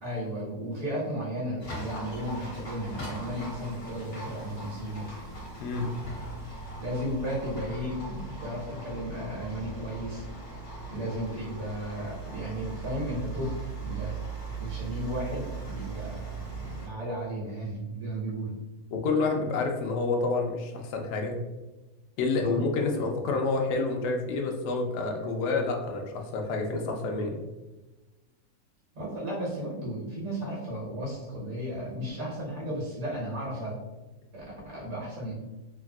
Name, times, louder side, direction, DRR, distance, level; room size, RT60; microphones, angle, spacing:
voice 1, 0.0-5.1 6.8-10.2 10.8-13.6 13.8-18.5 22.3-22.7 28.9-33.7 34.3-35.4, equal, 60° right, -6 dB, 1.6 m, -34 dB
Livestock farm animals working animals, 1.6-16.9, right 3 dB, 55° left, 1.2 m, -39 dB
voice 2, 18.9-21.4 22.2-27.4, left 3 dB, 90° left, 2 dB, 1.1 m, -28 dB
3.5 x 2.3 x 2.3 m, 1.1 s
omnidirectional pair, 1.7 m